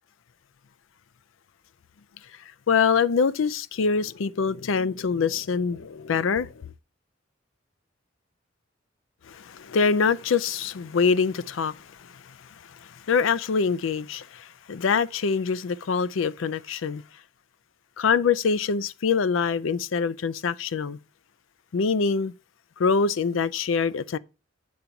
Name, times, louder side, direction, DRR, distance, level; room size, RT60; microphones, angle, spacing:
voice 1, 2.7-6.7 9.3-12.3 12.7-17.0 18.0-21.0 21.7-22.3 22.8-24.2, left 5 dB, 80° left, 0.4 m, -24 dB
8.5 x 3.9 x 5.7 m
head